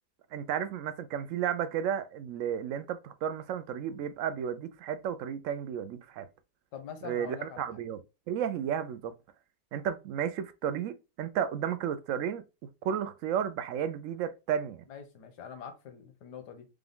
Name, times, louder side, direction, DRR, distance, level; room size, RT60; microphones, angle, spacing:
voice 1, 0.3-6.3 7.0-8.0 8.3-9.1 9.7-12.4 12.8-14.8, right 9 dB, 75° right, 0.7 m, -33 dB
voice 2, 6.7-7.8 14.9-16.7, left 8 dB, 80° left, 1.5 m, -44 dB
5.1 x 2.3 x 3.5 m
omnidirectional pair, 1.8 m